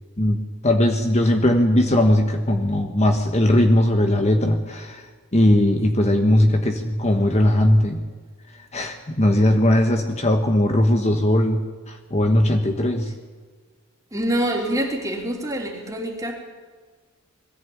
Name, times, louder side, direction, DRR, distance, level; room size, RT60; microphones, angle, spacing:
voice 1, 0.2-8.1 8.5-13.1, left 1 dB, 30° left, 4 dB, 1.3 m, -19 dB
voice 2, 14.1-16.3, right 1 dB, 15° right, 0 dB, 3.4 m, -25 dB
21.5 x 14.5 x 8.8 m, 1.5 s
head